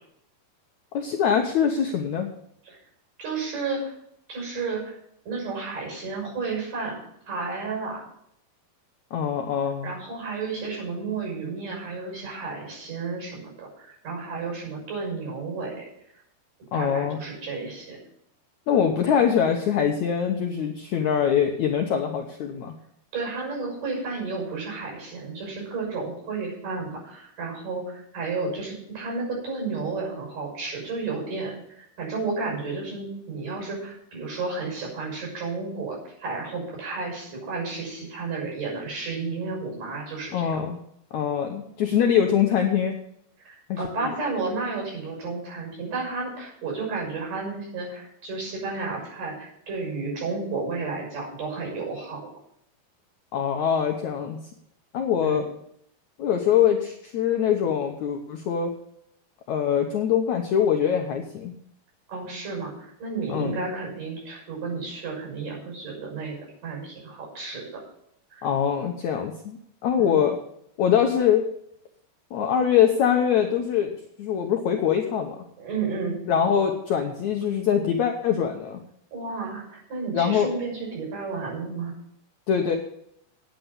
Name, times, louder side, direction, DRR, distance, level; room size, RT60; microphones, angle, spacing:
voice 1, 0.9-2.3 9.1-9.9 16.7-17.2 18.7-22.7 40.3-40.8 41.1-42.9 43.7-44.1 53.3-54.4 54.9-55.4 56.2-58.7 59.5-61.5 63.3-63.6 68.4-70.4 70.8-71.5 72.3-73.9 74.2-75.4 76.3-78.8 80.1-80.5 82.5-82.8, left 8 dB, 70° left, 3 dB, 1.8 m, -23 dB
voice 2, 3.2-3.9 4.3-5.0 5.3-7.0 7.3-8.0 9.8-15.9 16.7-18.0 23.1-40.5 43.4-52.2 55.2-55.5 62.1-66.4 66.6-67.7 68.3-68.5 70.0-70.2 75.6-76.2 79.1-81.9, right 4 dB, 55° right, -2 dB, 7.8 m, -32 dB
9.8 x 9.0 x 7.2 m, 0.73 s
omnidirectional pair, 4.5 m